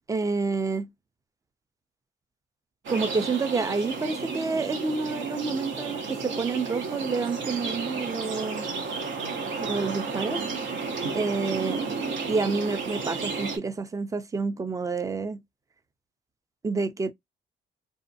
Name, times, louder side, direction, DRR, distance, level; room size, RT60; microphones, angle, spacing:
voice 1, 0.1-0.9 2.9-8.7 9.6-10.4 11.1-11.8 12.3-15.4 16.6-17.1, right 4 dB, 15° right, 0.4 m, -28 dB
sound 1, 2.8-13.6, right 4 dB, 70° right, 0.8 m, -32 dB
2.6 x 2.0 x 2.6 m
cardioid pair, 90°, 20 cm